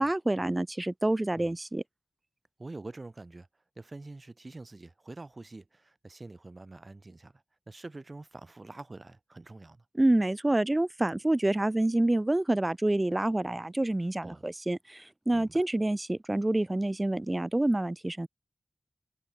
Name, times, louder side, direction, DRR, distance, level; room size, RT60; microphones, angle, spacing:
voice 1, 0.0-1.8 9.9-18.3, right 1 dB, 25° right, 0.3 m, -27 dB
voice 2, 2.6-9.9 14.2-14.5 15.3-15.6, right 2 dB, 40° right, 0.7 m, -46 dB
cardioid pair, 55°, 0 cm